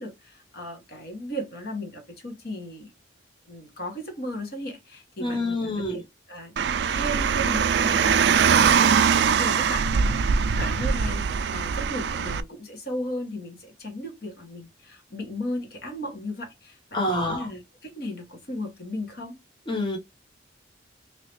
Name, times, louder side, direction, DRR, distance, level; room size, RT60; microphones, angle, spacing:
voice 1, 0.0-2.9 3.5-6.5 6.9-16.8 17.1-19.4, equal, 55° left, 1.2 m, -36 dB
voice 2, 5.2-6.0 16.9-17.5 19.7-20.0, left 1 dB, 25° left, 0.8 m, -27 dB
Car, 6.6-12.4, right 6 dB, 65° right, 0.3 m, -22 dB
3.1 x 2.8 x 3.0 m
head